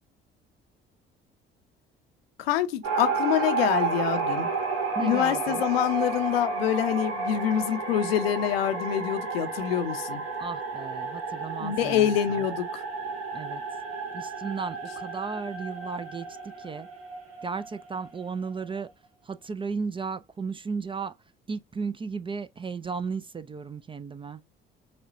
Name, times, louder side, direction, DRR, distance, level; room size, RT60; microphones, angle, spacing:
voice 1, 2.4-4.5 5.0-10.2 11.6-12.8, left 11 dB, 80° left, 0.6 m, -26 dB
sound 1, 2.8-18.8, right 4 dB, 55° right, 1.4 m, -32 dB
voice 2, 5.0-5.6 10.4-12.1 13.3-13.6 14.1-16.9 17.4-18.9 19.2-21.1 21.5-24.4, right 5 dB, 20° right, 0.3 m, -34 dB
5.0 x 2.2 x 2.5 m
hypercardioid pair, 50°, 29 cm